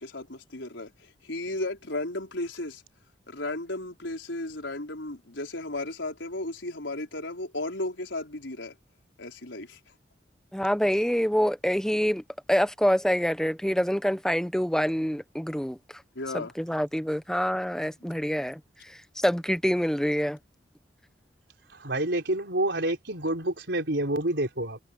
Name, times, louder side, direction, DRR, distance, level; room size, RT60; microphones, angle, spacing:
voice 1, 0.0-2.8 3.3-8.8 9.2-9.8 16.1-16.5, left 2 dB, 85° left, 4.8 m, -34 dB
voice 2, 10.5-12.2 12.5-15.8 16.3-18.6 18.9-20.4, equal, 5° left, 1.0 m, -26 dB
voice 3, 21.7-24.8, right 1 dB, 70° right, 4.8 m, -28 dB
head